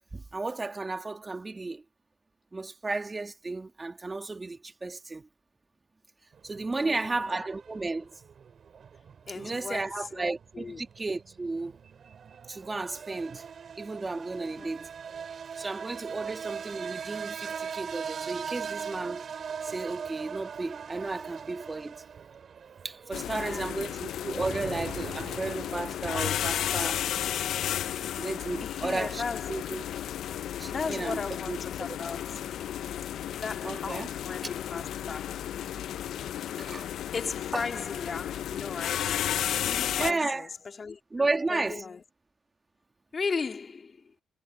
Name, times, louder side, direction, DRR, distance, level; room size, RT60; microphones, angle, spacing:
voice 1, 0.0-1.8 2.5-5.3 6.4-8.1 9.4-11.7 12.5-13.4 13.8-14.9 15.6-19.2 19.6-22.0 22.8-27.0 28.2-29.2 29.5-29.8 30.6-31.2 31.5-31.6 33.6-34.1 36.6-36.9 37.5-37.6 40.0-40.5 41.1-41.8, right 3 dB, 25° right, 1.8 m, -33 dB
sound 1, 6.3-26.1, right 7 dB, 50° right, 2.6 m, -41 dB
voice 2, 6.8-7.5 9.3-10.8 14.6-14.7 23.1-23.9 27.9-28.0 28.6-29.8 30.7-32.7 33.4-35.6 36.6-42.0 43.1-44.1, left 5 dB, 35° left, 2.9 m, -37 dB
sound 2, 23.1-40.1, left 10 dB, 70° left, 0.4 m, -33 dB
cardioid pair, 90°, 0 cm